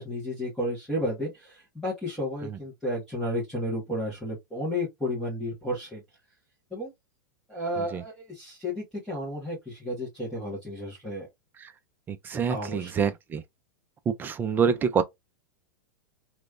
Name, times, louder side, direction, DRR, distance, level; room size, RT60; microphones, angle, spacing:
voice 1, 0.0-6.0 6.7-6.9 7.5-11.3 12.5-13.1, left 1 dB, 5° left, 1.6 m, -32 dB
voice 2, 12.1-13.4 14.1-15.0, right 6 dB, 15° right, 0.4 m, -26 dB
3.2 x 3.1 x 2.5 m
supercardioid pair, 150°, 11 cm